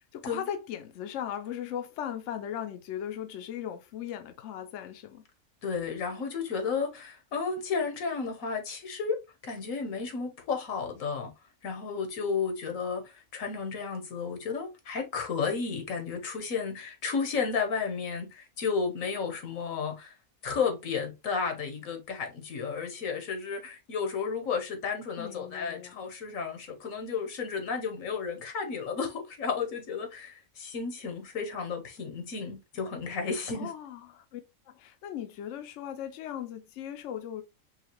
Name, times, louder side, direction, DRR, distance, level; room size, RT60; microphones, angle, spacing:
voice 1, 0.1-5.2 25.2-26.0 33.5-34.4 34.7-37.4, left 10 dB, 70° left, 0.9 m, -38 dB
voice 2, 5.6-11.3 11.6-20.1 20.4-33.7, left 5 dB, 85° left, 1.4 m, -33 dB
5.6 x 2.4 x 2.9 m
omnidirectional pair, 1.4 m